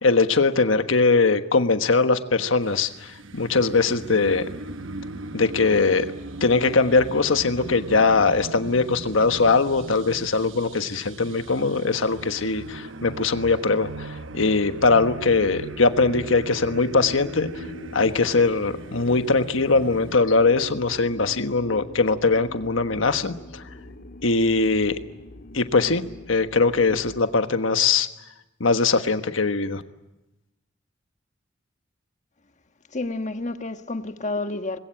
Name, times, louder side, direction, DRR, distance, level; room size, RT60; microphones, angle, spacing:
voice 1, 0.0-4.4 5.3-6.1 6.4-17.5 17.9-23.6 24.2-24.9 25.5-26.0 26.3-28.1 28.6-29.8, left 3 dB, 80° left, 1.4 m, -21 dB
sound 1, 2.6-20.2, right 2 dB, 75° right, 1.0 m, -39 dB
sound 2, 14.8-27.3, left 2 dB, 55° left, 1.7 m, -43 dB
voice 2, 32.9-34.8, left 2 dB, 40° left, 1.3 m, -29 dB
26.0 x 21.0 x 8.8 m
head